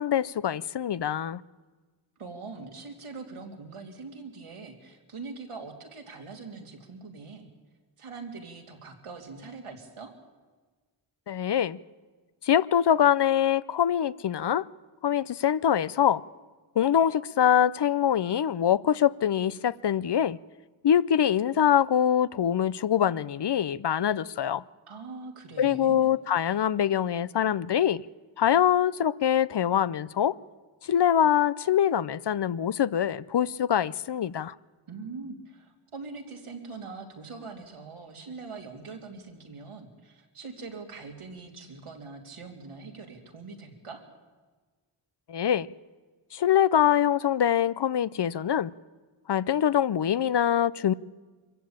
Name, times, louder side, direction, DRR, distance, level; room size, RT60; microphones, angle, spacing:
voice 1, 0.0-1.4 11.3-11.8 12.4-14.6 15.0-16.2 16.8-20.4 20.8-24.6 25.6-28.0 28.4-30.4 30.8-34.5 45.3-45.7 46.3-48.7 49.3-50.9, left 9 dB, 55° left, 0.6 m, -24 dB
voice 2, 2.2-7.5 8.0-10.1 24.9-26.1 34.9-44.0, right 4 dB, 85° right, 3.0 m, -42 dB
24.0 x 15.0 x 8.8 m
wide cardioid pair, 105°, 49 cm